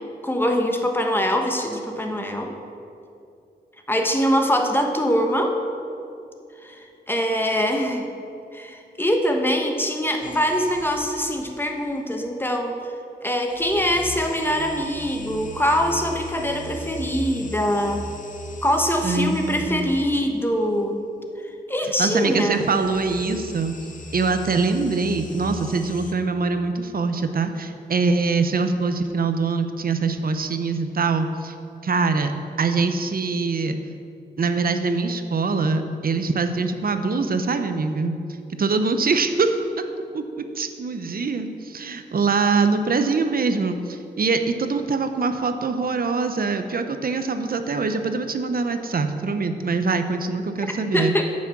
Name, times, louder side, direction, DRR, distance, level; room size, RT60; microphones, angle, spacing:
voice 1, 0.2-2.5 3.9-5.6 6.6-8.1 8.5-12.7 13.2-18.0 18.6-21.0 21.7-22.7 50.6-50.7 50.9-51.2, equal, 10° left, 3 dB, 1.2 m, -23 dB
sound 1, 10.2-11.5 13.4-20.1 22.5-26.1, left 1 dB, 45° left, 0.9 m, -38 dB
voice 2, 19.0-19.9 22.0-23.7 24.1-31.5 31.8-32.3 32.6-33.8 34.4-38.2 38.6-39.5 40.1-51.1, right 4 dB, 55° right, 8 dB, 0.7 m, -23 dB
8.3 x 6.3 x 7.2 m, 2.6 s
cardioid pair, 75°, 18 cm